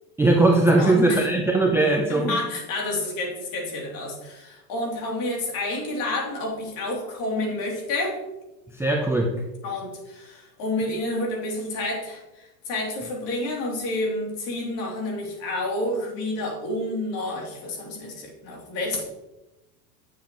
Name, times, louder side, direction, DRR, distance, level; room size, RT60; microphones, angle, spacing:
voice 1, 0.2-2.4 8.8-9.3, right 2 dB, 5° right, 1 dB, 0.5 m, -19 dB
voice 2, 0.8-1.3 2.1-8.2 9.6-19.0, left 2 dB, 50° left, -1 dB, 3.0 m, -29 dB
8.7 x 7.5 x 3.0 m, 0.99 s
supercardioid pair, 120°, 47 cm